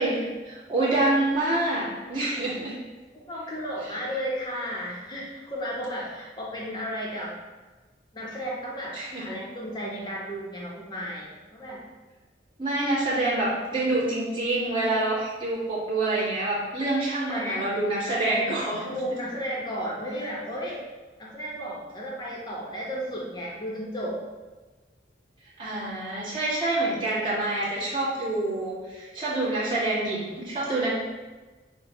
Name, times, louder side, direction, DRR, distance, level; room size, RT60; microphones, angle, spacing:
voice 1, 0.0-2.8 8.9-9.3 12.6-19.0 25.6-30.9, right 2 dB, 25° right, -10 dB, 1.4 m, -27 dB
voice 2, 3.3-7.3 8.1-11.8 17.2-17.7 18.8-20.8 21.2-24.2, equal, 25° left, -4 dB, 0.8 m, -33 dB
6.1 x 2.2 x 2.9 m, 1.2 s
head